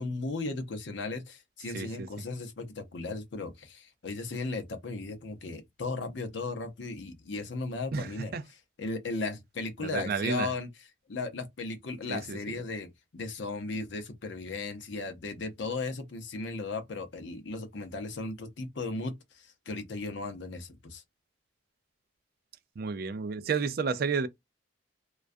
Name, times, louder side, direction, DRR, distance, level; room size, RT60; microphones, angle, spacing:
voice 1, 0.0-8.3 8.8-10.7 11.1-21.0, left 3 dB, 70° left, 0.6 m, -36 dB
voice 2, 1.7-2.1 7.9-8.4 9.8-10.5 12.1-12.4 22.8-24.3, right 5 dB, 50° right, 0.3 m, -31 dB
2.2 x 2.2 x 2.4 m
head